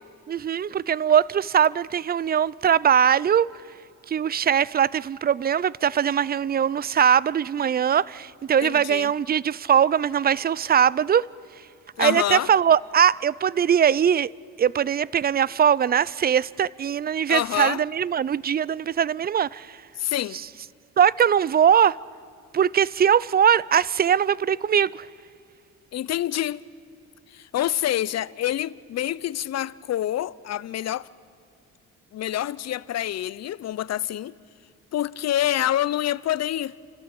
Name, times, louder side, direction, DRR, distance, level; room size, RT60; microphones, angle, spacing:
voice 1, 0.3-3.5 4.1-11.3 12.0-14.3 14.6-19.8 21.0-22.0 22.5-25.1, right 8 dB, 30° right, 0.5 m, -21 dB
voice 2, 8.6-9.1 12.0-12.5 17.3-17.8 20.0-20.4 25.9-26.6 27.3-31.1 32.1-34.3 34.9-36.7, left 12 dB, 60° left, 0.7 m, -27 dB
30.0 x 13.5 x 8.9 m
cardioid pair, 90°, 30 cm